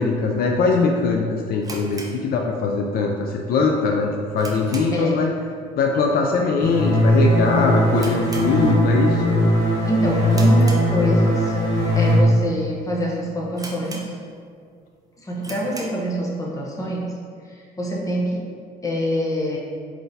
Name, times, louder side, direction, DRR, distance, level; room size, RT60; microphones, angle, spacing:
voice 1, 0.0-5.3 5.7-9.2, left 4 dB, 60° left, 1 dB, 0.4 m, -21 dB
sound 1, 1.6-3.0 3.2-3.3 3.8-5.2 5.5-5.8 6.1-6.2 6.8-7.1 7.4-7.5 7.9-9.1 9.4-9.7 10.3-11.4 12.0-12.1 12.7-12.8 13.0-13.1 13.6-14.5 14.9-15.0 15.4-16.1, right 3 dB, 20° right, 0.6 m, -38 dB
sound 2, 6.6-12.2, equal, 80° left, 1.2 m, -19 dB
voice 2, 9.9-11.5 11.9-14.1 15.2-17.1 17.5-18.4 18.8-19.6, equal, 20° left, -3 dB, 0.9 m, -26 dB
4.5 x 3.9 x 2.7 m, 2.1 s
cardioid pair, 110°, 17 cm